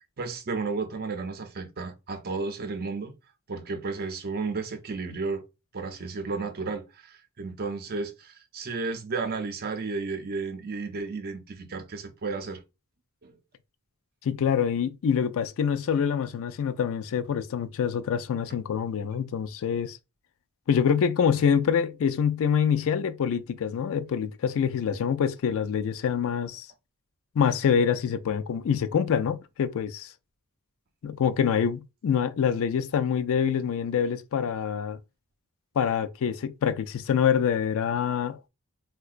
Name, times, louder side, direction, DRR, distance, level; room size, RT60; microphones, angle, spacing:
voice 1, 0.2-3.1 3.5-5.4 5.7-12.6 13.2-13.4, right 4 dB, 45° right, 0.6 m, -33 dB
voice 2, 14.2-20.0 20.7-26.7 27.4-30.1 31.0-35.0 35.8-38.4, left 7 dB, 65° left, 0.4 m, -25 dB
3.7 x 2.2 x 2.4 m
head